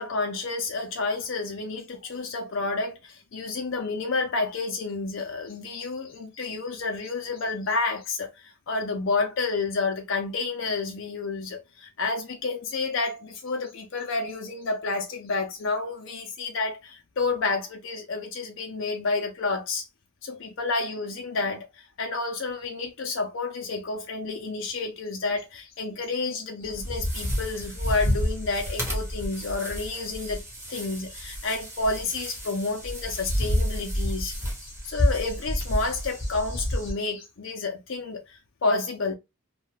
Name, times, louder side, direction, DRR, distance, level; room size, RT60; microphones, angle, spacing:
voice 1, 0.0-19.9 20.2-30.4 30.7-39.1, left 3 dB, 65° left, 0.5 m, -30 dB
sound 1, 26.6-36.9, equal, 15° right, 1.0 m, -30 dB
2.7 x 2.2 x 3.2 m
head